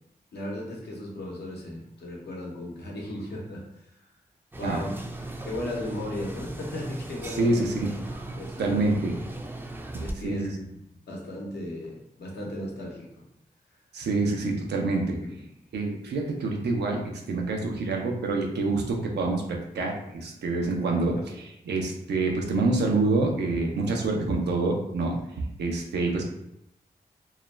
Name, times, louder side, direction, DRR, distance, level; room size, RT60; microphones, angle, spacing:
voice 1, 0.3-3.6 4.6-4.9 5.4-7.7 8.4-8.8 10.0-10.5 11.1-13.1 15.2-15.3 21.2-21.3, left 1 dB, 80° left, -2 dB, 0.7 m, -36 dB
sound 1, 4.5-10.1, right 2 dB, 10° right, 0.4 m, -38 dB
voice 2, 7.3-7.9 8.6-9.1 9.9-10.5 13.9-15.2 15.7-17.0 17.3-26.2, right 3 dB, 90° right, 1 dB, 0.5 m, -27 dB
2.3 x 2.1 x 3.1 m, 0.81 s
cardioid pair, 40°, 17 cm